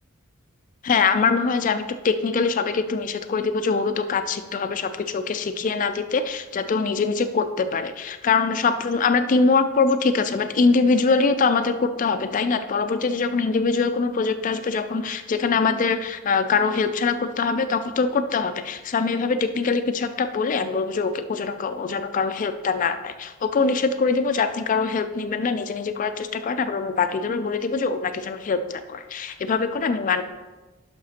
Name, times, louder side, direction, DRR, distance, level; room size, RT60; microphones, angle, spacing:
voice 1, 0.8-30.2, left 4 dB, 40° left, 9 dB, 0.3 m, -23 dB
11.0 x 5.9 x 2.8 m, 1.2 s
head